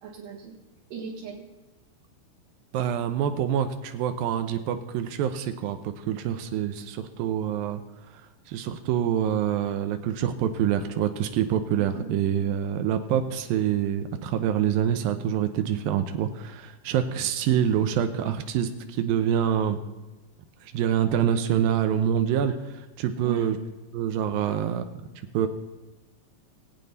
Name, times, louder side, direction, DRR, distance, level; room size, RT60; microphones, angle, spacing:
voice 1, 0.0-0.6 0.9-1.5 11.8-12.2 17.5-17.6 23.1-23.5 24.5-24.6, right 7 dB, 70° right, -3 dB, 3.1 m, -38 dB
voice 2, 2.7-7.8 8.5-19.8 20.6-23.6 23.9-24.9 25.3-25.5, right 9 dB, 90° right, 8 dB, 2.5 m, -26 dB
20.0 x 8.6 x 4.1 m, 1.1 s
omnidirectional pair, 4.1 m